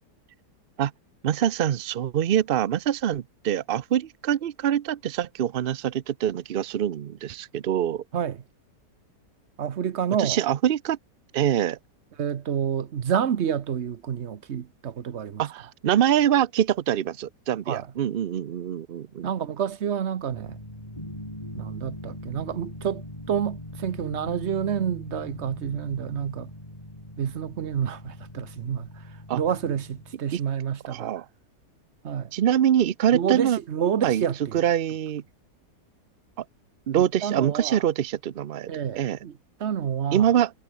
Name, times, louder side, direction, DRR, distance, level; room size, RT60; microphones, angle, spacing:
voice 1, 1.2-8.0 10.2-11.0 11.3-11.8 15.4-19.3 29.3-29.4 30.3-30.4 30.9-31.3 32.3-33.6 34.0-34.2 34.5-35.2 36.9-38.7 39.0-39.2 40.1-40.5, right 10 dB, 80° right, 0.5 m, -24 dB
voice 2, 8.1-8.4 9.6-10.4 12.2-15.4 17.7-17.9 19.2-20.6 21.6-23.0 23.3-26.5 27.2-28.9 29.3-31.1 32.0-32.3 33.1-34.6 36.9-37.8 38.7-40.3, right 8 dB, 50° right, 1.0 m, -28 dB
sound 1, 20.3-30.2, left 1 dB, 20° left, 7.6 m, -41 dB
omnidirectional pair, 1.8 m